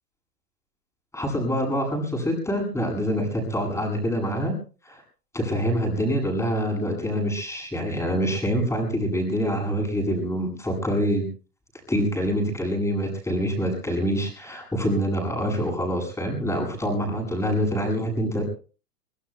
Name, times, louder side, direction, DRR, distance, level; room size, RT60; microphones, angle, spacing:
voice 1, 1.1-4.5 4.8-5.0 5.3-11.2 11.9-18.4, equal, 5° left, 1 dB, 7.8 m, -25 dB
24.5 x 23.0 x 2.3 m, 0.36 s
hypercardioid pair, 110°, 46 cm